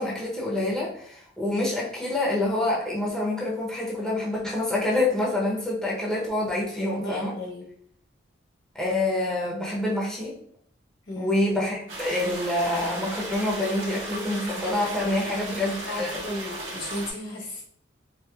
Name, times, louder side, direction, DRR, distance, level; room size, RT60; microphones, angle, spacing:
voice 1, 0.0-7.3 8.7-10.4 11.2-16.2, left 1 dB, 5° left, -6 dB, 0.6 m, -27 dB
voice 2, 6.6-7.7 11.1-11.3 14.9-15.6 15.9-17.6, left 1 dB, 65° left, -3 dB, 1.3 m, -35 dB
sound 1, 11.9-17.1, right 1 dB, 85° right, 1.0 m, -36 dB
4.3 x 2.0 x 2.3 m, 0.63 s
head